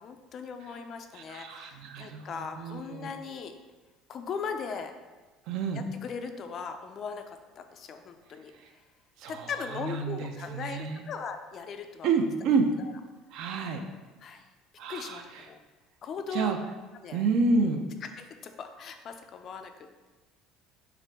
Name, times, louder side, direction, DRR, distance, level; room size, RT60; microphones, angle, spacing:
voice 1, 0.0-3.5 4.1-4.9 5.7-8.8 9.3-12.1 12.8-12.9 14.2-14.5 14.9-15.6 16.0-16.5 17.0-17.2 18.2-19.7, left 6 dB, 35° left, 6 dB, 0.3 m, -39 dB
voice 2, 1.1-3.1 5.5-5.8 9.2-11.0 12.0-12.7 13.3-13.8 14.8-15.2 16.3-16.6 17.1-17.8, right 4 dB, 60° right, 5 dB, 0.5 m, -29 dB
5.8 x 2.5 x 3.4 m, 1.3 s
cardioid pair, 150°, 0 cm